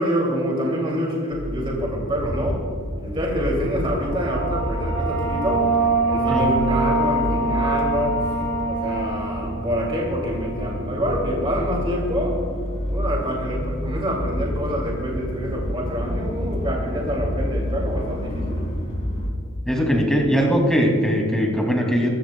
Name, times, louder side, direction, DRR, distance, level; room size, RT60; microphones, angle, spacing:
voice 1, 0.0-2.6 3.0-5.7 6.1-8.3 8.6-12.4 12.9-18.6, equal, 25° right, -2 dB, 2.5 m, -26 dB
sound 1, 1.3-19.3, equal, 35° left, 2.4 m, -29 dB
sound 2, 3.8-11.1, right 3 dB, 60° right, 3.2 m, -25 dB
voice 2, 19.7-22.1, equal, 5° left, -1 dB, 2.5 m, -20 dB
23.0 x 14.0 x 2.3 m, 2.3 s
head